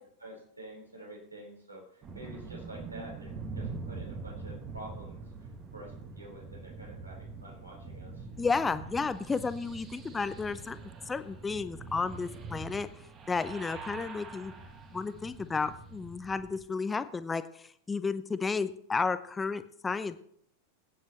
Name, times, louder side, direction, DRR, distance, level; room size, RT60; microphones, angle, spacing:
voice 1, 0.2-5.2 5.7-8.3 13.9-14.1, right 1 dB, 80° right, -1 dB, 4.2 m, -48 dB
sound 1, 2.0-16.6, right 4 dB, 30° right, 1.5 m, -44 dB
voice 2, 8.4-10.8 11.1-12.9 13.3-14.5 14.9-20.2, left 4 dB, 15° left, 13 dB, 0.7 m, -32 dB
20.5 x 9.5 x 3.0 m, 0.65 s
figure-of-eight pair, 90°, 0 cm